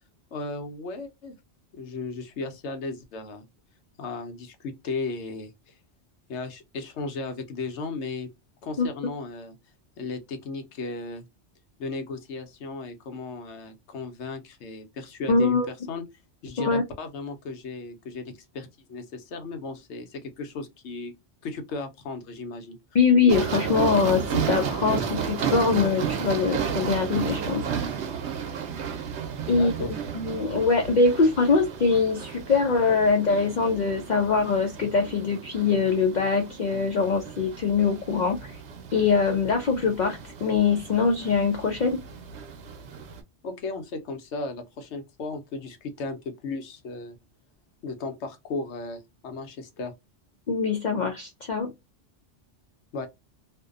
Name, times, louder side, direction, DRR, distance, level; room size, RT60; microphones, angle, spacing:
voice 1, 0.3-1.4 1.7-3.4 4.0-5.7 6.3-8.3 8.6-9.5 10.0-11.2 11.8-16.0 16.4-21.1 21.4-22.8 29.5-29.9 43.4-47.2 47.8-49.9 52.9-53.1, left 3 dB, 80° left, 1.0 m, -35 dB
voice 2, 15.3-15.7 16.6-16.8 22.9-28.0 29.5-38.6 38.9-42.0 50.5-51.7, left 4 dB, 55° left, 0.5 m, -23 dB
sound 1, 23.3-43.2, right 7 dB, 75° right, 0.9 m, -33 dB
2.5 x 2.1 x 2.4 m
omnidirectional pair, 1.2 m